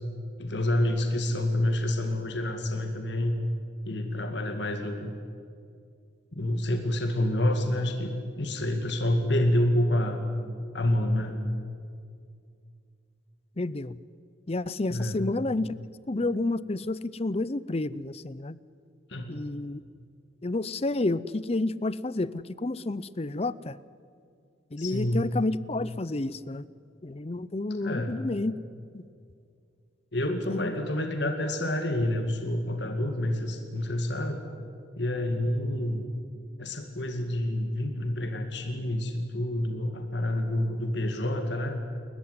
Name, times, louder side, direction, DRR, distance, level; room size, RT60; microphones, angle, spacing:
voice 1, 0.4-3.4 3.9-5.1 6.3-10.2 10.7-11.4 14.9-15.2 19.1-19.4 24.8-25.2 27.8-28.2 30.1-34.4 35.0-36.0 36.6-41.7, left 1 dB, 60° left, 5 dB, 2.2 m, -28 dB
voice 2, 13.6-14.0 14.5-15.8 16.1-18.6 19.3-19.8 20.4-23.8 24.7-26.7 27.0-28.6 28.9-29.1 30.5-30.7, left 2 dB, 30° left, 18 dB, 0.6 m, -30 dB
29.5 x 14.5 x 9.5 m, 2.3 s
head